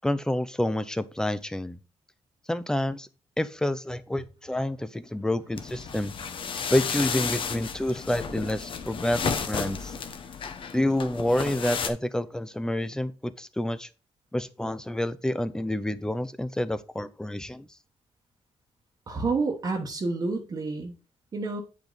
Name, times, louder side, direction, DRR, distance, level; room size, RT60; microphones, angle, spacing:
voice 1, 0.0-1.8 2.5-3.1 3.4-6.1 6.7-9.9 10.7-13.9 14.3-17.7, left 1 dB, 5° left, 0.5 m, -28 dB
sound 1, 5.6-11.9, left 6 dB, 50° left, 0.9 m, -33 dB
voice 2, 19.1-20.9 21.3-21.6, right 3 dB, 35° right, 1.2 m, -29 dB
8.8 x 5.0 x 4.0 m
cardioid pair, 130°, 11 cm